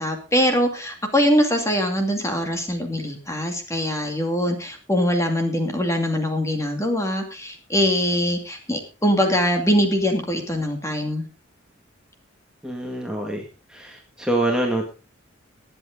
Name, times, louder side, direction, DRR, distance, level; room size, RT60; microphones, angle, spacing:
voice 1, 0.0-11.3, equal, 15° left, 4 dB, 2.5 m, -22 dB
voice 2, 12.6-13.4 13.7-14.9, right 1 dB, 5° right, 0 dB, 1.8 m, -25 dB
20.0 x 8.1 x 3.8 m, 0.32 s
head